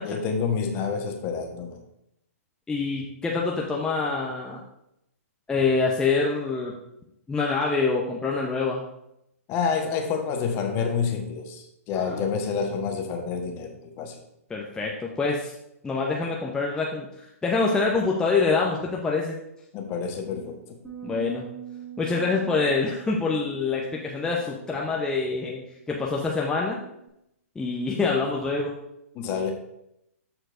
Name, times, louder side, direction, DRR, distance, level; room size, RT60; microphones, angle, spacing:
voice 1, 0.0-1.8 9.5-14.1 19.7-20.8 29.1-29.5, left 6 dB, 30° left, 3 dB, 1.2 m, -28 dB
voice 2, 2.7-4.6 5.5-6.7 7.3-8.8 11.9-12.2 14.5-15.5 15.8-17.1 17.4-19.4 21.0-21.4 22.0-25.6 25.9-26.8 27.6-28.8, left 4 dB, 10° left, -2 dB, 0.8 m, -25 dB
sound 1, 20.8-27.1, right 11 dB, 10° right, 1.9 m, -44 dB
13.0 x 4.5 x 2.6 m, 0.81 s
hypercardioid pair, 120°, 8 cm